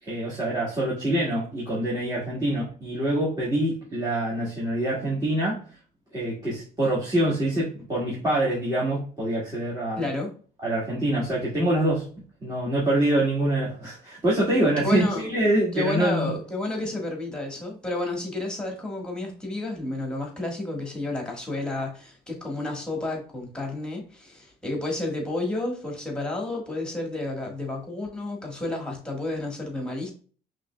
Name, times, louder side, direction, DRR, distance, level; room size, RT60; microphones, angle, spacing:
voice 1, 0.0-5.6 6.1-10.0 10.6-12.0 12.4-16.4, right 1 dB, 20° right, -7 dB, 1.6 m, -25 dB
voice 2, 10.0-10.3 14.8-15.2 15.7-30.1, left 2 dB, 5° left, 0 dB, 1.5 m, -31 dB
5.3 x 3.2 x 2.2 m, 0.40 s
cardioid pair, 110°, 17 cm